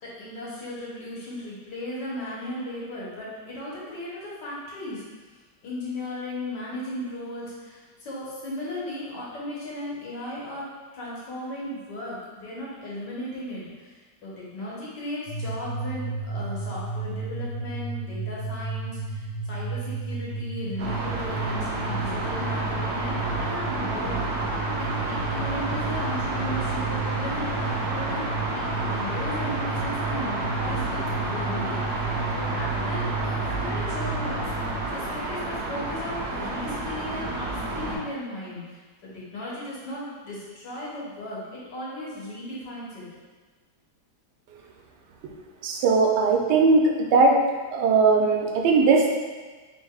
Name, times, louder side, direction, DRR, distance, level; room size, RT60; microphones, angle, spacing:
voice 1, 0.0-5.0 5.6-24.6 25.1-32.1 32.3-43.0, left 1 dB, 90° left, -7 dB, 1.8 m, -36 dB
sound 1, 15.3-34.8, right 3 dB, 75° left, 0.6 m, -32 dB
sound 2, 20.8-38.0, right 2 dB, 55° right, 1.0 m, -30 dB
voice 2, 45.6-46.8 47.1-47.4 47.7-49.2, right 4 dB, 80° right, 1 dB, 1.2 m, -19 dB
4.7 x 3.7 x 2.3 m, 1.4 s
omnidirectional pair, 1.9 m